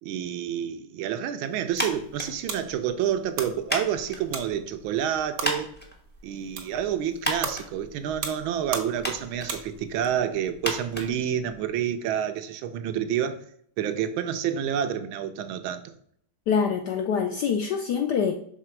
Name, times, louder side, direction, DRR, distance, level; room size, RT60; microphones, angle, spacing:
voice 1, 0.0-5.7 6.2-13.4 13.8-15.9, right 9 dB, 80° right, 1.3 m, -29 dB
sound 1, 1.5-10.1, right 5 dB, 60° right, 1.3 m, -39 dB
sound 2, 1.7-11.9, equal, 10° left, 0.4 m, -36 dB
voice 2, 16.5-18.3, left 6 dB, 75° left, 0.9 m, -25 dB
6.0 x 3.8 x 4.4 m
omnidirectional pair, 2.3 m